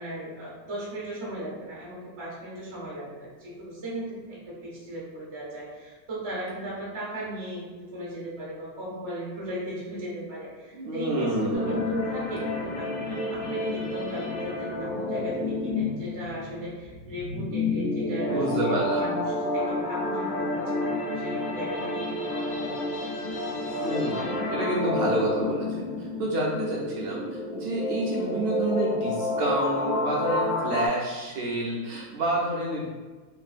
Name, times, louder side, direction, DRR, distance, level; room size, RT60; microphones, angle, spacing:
voice 1, 0.0-23.0, right 1 dB, 45° right, -6 dB, 0.3 m, -37 dB
voice 2, 10.7-11.8 18.3-19.2 23.8-27.2 27.5-32.8, right 1 dB, 75° right, -4 dB, 1.1 m, -29 dB
sound 1, 11.5-30.9, left 2 dB, 80° left, 0.7 m, -30 dB
3.3 x 2.5 x 2.4 m, 1.3 s
omnidirectional pair, 2.2 m